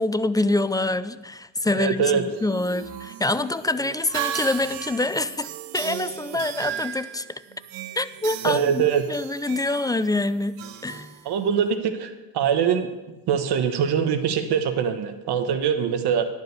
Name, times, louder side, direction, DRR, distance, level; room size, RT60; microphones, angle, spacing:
voice 1, 0.0-5.5 5.7-7.3 8.0-10.6 10.8-11.2, left 2 dB, 10° left, 14 dB, 0.4 m, -25 dB
voice 2, 1.7-2.2 8.4-9.0 11.2-12.9 13.3-16.2, right 7 dB, 65° right, 8 dB, 1.3 m, -23 dB
sound 1, 2.2-11.8, right 11 dB, 85° right, 0.8 m, -36 dB
11.0 x 5.1 x 8.2 m, 1.1 s
supercardioid pair, 70°, 43 cm